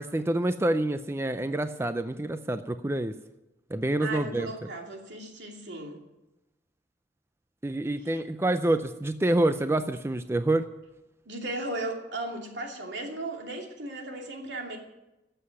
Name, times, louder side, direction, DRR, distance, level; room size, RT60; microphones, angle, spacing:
voice 1, 0.0-3.1 3.7-4.5 7.6-10.7, right 1 dB, 15° right, 10 dB, 0.4 m, -27 dB
voice 2, 4.0-6.0 11.3-14.8, right 2 dB, 75° right, 1 dB, 2.6 m, -36 dB
12.5 x 7.8 x 9.7 m, 0.97 s
head